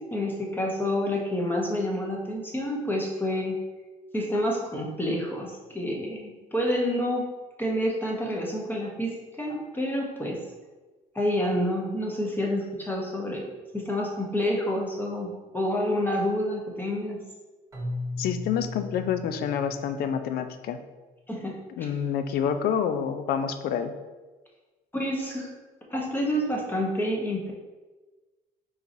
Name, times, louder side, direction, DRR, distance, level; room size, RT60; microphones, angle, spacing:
voice 1, 0.0-3.6 4.1-7.3 7.6-10.4 11.1-13.5 13.7-17.2 21.3-21.6 24.9-25.5 25.9-27.5, left 1 dB, 10° left, -1 dB, 0.9 m, -28 dB
Keyboard (musical), 17.7-20.7, left 3 dB, 15° right, 1.3 m, -37 dB
voice 2, 18.2-20.8 21.8-23.9, left 8 dB, 65° left, 9 dB, 0.4 m, -28 dB
4.6 x 3.9 x 2.6 m, 1.2 s
cardioid pair, 110°, 17 cm